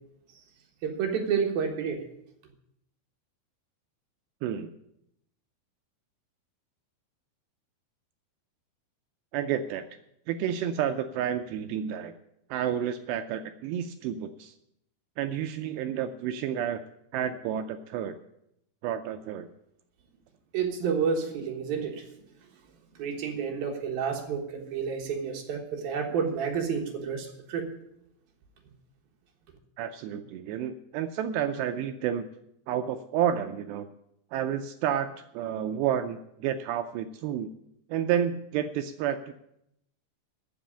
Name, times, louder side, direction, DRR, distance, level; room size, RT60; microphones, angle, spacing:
voice 1, 0.8-2.0 20.5-22.0 23.0-27.6, right 6 dB, 65° right, 2 dB, 2.8 m, -30 dB
voice 2, 4.4-4.7 9.3-9.9 10.3-12.1 12.5-14.6 15.2-16.8 17.1-18.2 18.8-19.5 29.8-32.3 32.7-33.9 34.3-37.5 37.9-39.3, right 9 dB, 85° right, 8 dB, 2.5 m, -30 dB
13.5 x 6.1 x 8.6 m, 0.80 s
omnidirectional pair, 5.3 m